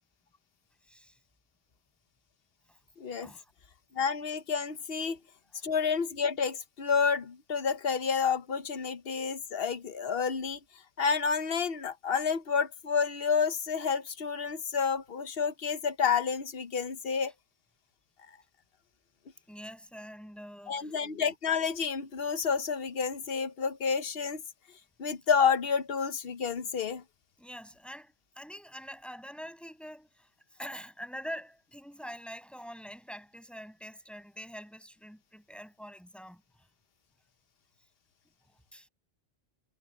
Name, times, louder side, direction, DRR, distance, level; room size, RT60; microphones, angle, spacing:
voice 1, 0.8-1.2 2.7-2.8 3.2-3.5 19.5-21.0 27.4-36.7 38.4-38.9, equal, ahead, 7.2 m, -45 dB
voice 2, 3.0-3.3 3.9-5.2 5.6-10.6 11.0-17.3 20.7-24.4 25.0-27.0, left 6 dB, 65° left, 1.2 m, -29 dB
omnidirectional pair, 1.1 m